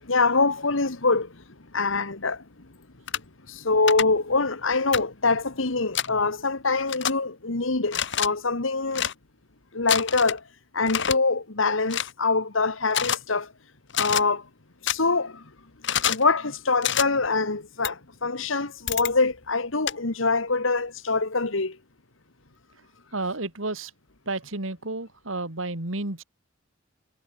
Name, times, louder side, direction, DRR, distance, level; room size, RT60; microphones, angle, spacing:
voice 1, 0.0-1.3 1.7-2.4 3.5-9.1 9.7-10.4 10.7-13.5 13.9-14.5 14.8-15.4 16.1-21.8, left 3 dB, 80° left, 1.9 m, -24 dB
sound 1, 3.1-3.2 3.9-4.0 4.9-5.0 5.9-6.1 6.9-7.1 7.9-8.3 8.9-9.1 9.9-10.4 10.9-11.2 11.9-12.1 12.9-13.2 13.9-14.2 14.9-15.0 15.8-16.2 16.8-17.0 17.8-17.9 18.9-19.1 19.9-20.0, left 9 dB, 65° left, 2.4 m, -26 dB
voice 2, 23.1-23.9 24.3-26.2, right 2 dB, 85° right, 3.1 m, -31 dB
head